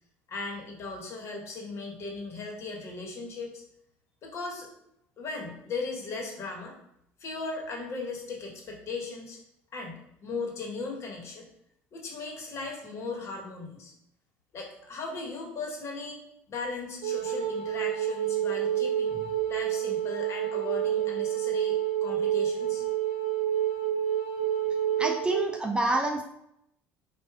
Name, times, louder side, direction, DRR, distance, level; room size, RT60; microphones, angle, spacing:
voice 1, 0.3-3.6 4.2-4.7 5.2-6.7 7.2-9.4 9.7-11.5 11.9-13.9 14.5-16.2 16.5-22.8, left 3 dB, 45° left, 0 dB, 1.3 m, -37 dB
Wind instrument woodwind instrument, 17.0-25.5, right 10 dB, 70° right, 0.8 m, -28 dB
voice 2, 25.0-26.2, right 2 dB, 15° right, 3 dB, 0.5 m, -27 dB
4.5 x 2.5 x 3.5 m, 0.77 s
supercardioid pair, 85°, 6 cm